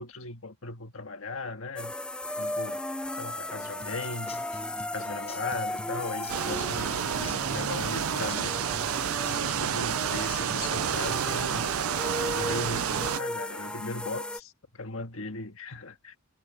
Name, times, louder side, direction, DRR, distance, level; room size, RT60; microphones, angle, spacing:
voice 1, 0.0-1.9 2.4-2.8 3.1-4.5 4.9-8.6 9.3-11.7 12.3-16.1, left 3 dB, 65° left, 1.6 m, -38 dB
sound 1, 1.8-14.4, left 1 dB, 5° left, 0.3 m, -36 dB
Human voice / Acoustic guitar / Drum, 3.8-11.8, left 2 dB, 25° left, 7.3 m, -47 dB
sound 2, 6.3-13.2, right 9 dB, 75° right, 0.4 m, -30 dB
head